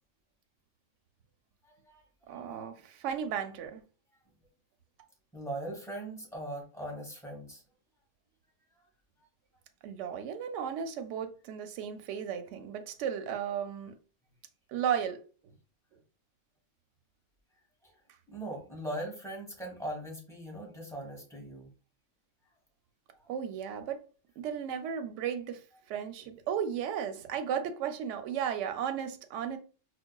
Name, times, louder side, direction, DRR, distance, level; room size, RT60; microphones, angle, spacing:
voice 1, 1.6-2.0 5.3-7.6 17.8-17.9 18.3-21.7, right 1 dB, 5° left, 1.1 m, -40 dB
voice 2, 2.3-3.8 9.8-14.0 14.7-15.2 23.3-24.0 24.4-25.6 25.9-29.6, right 8 dB, 70° right, 0.9 m, -34 dB
4.6 x 2.3 x 2.2 m
omnidirectional pair, 1.3 m